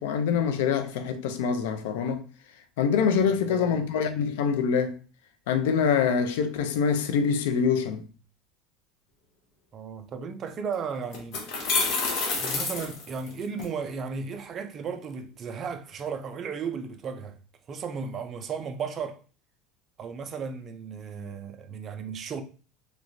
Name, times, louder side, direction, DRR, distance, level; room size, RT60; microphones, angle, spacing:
voice 1, 0.0-2.2 2.8-5.0 5.5-8.0, left 6 dB, 85° left, 0.4 m, -25 dB
voice 2, 3.3-3.8 9.7-11.4 12.4-17.4 17.7-19.2 20.0-22.4, right 5 dB, 30° right, 0.4 m, -35 dB
sound 1, 10.5-10.6 11.1-13.6, left 4 dB, 55° left, 0.9 m, -28 dB
3.1 x 3.0 x 2.6 m
supercardioid pair, 145°, 0 cm